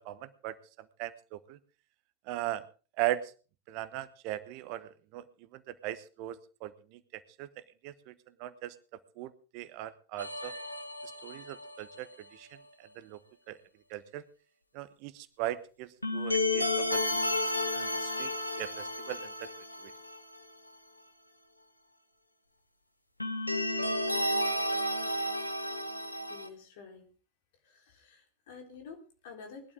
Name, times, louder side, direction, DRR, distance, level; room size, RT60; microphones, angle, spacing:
voice 1, 0.0-1.6 2.3-2.6 3.0-3.3 3.7-5.2 5.5-7.5 7.8-8.1 8.4-8.8 9.2-10.5 11.2-13.2 13.5-13.6 13.9-14.2 14.7-19.5 19.8-19.9, right 14 dB, 45° right, 16 dB, 1.0 m, -39 dB
sound 1, 10.2-12.0 16.0-20.4 20.7-20.8 23.2-26.5, left 1 dB, 85° left, 1.4 m, -32 dB
voice 2, 26.3-27.1 27.6-29.7, left 5 dB, 50° left, 3 dB, 3.8 m, -49 dB
20.5 x 12.0 x 3.6 m, 0.36 s
figure-of-eight pair, 90°, 0 cm